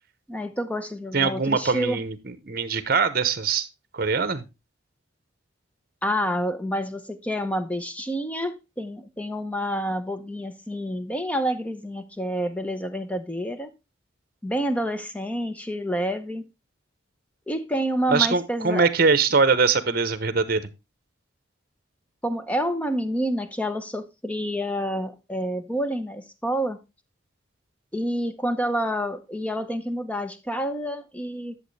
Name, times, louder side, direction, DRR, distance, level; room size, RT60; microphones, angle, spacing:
voice 1, 0.3-2.0 6.0-13.7 14.4-16.4 17.5-18.9 22.2-26.8 27.9-31.5, equal, 5° left, 0.7 m, -28 dB
voice 2, 1.1-3.7 3.9-4.4 18.1-20.6, right 4 dB, 50° right, 0.9 m, -22 dB
11.0 x 7.1 x 3.2 m
head